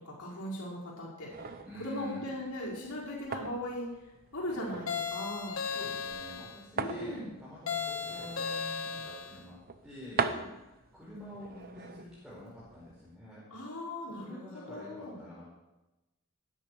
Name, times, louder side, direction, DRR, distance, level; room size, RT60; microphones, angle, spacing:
voice 1, 0.0-3.9 4.3-5.6 6.7-7.3 10.2-10.5 13.5-15.2, left 1 dB, 90° left, -6 dB, 5.3 m, -39 dB
sound 1, 1.3-13.2, right 5 dB, 45° right, 0.9 m, -41 dB
voice 2, 1.6-2.3 5.7-10.3 10.9-13.4 14.2-15.5, equal, ahead, -9 dB, 5.2 m, -47 dB
sound 2, 4.9-6.6 7.7-9.4, left 6 dB, 65° left, 1.3 m, -36 dB
18.5 x 10.0 x 5.0 m, 1.0 s
head